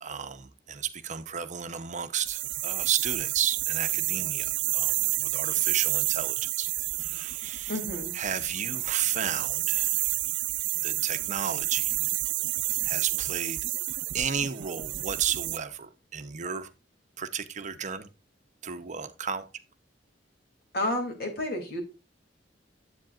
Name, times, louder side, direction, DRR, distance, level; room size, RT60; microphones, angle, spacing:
voice 1, 0.0-6.7 7.0-7.7 8.1-9.9 10.8-11.9 12.9-13.6 14.1-16.7 17.2-18.1 18.6-19.4, right 8 dB, 40° right, 0.7 m, -33 dB
sound 1, 2.2-15.6, right 17 dB, 75° right, 0.4 m, -30 dB
voice 2, 7.7-8.1 20.7-21.8, left 1 dB, 60° left, 2.8 m, -30 dB
10.5 x 8.0 x 2.4 m
head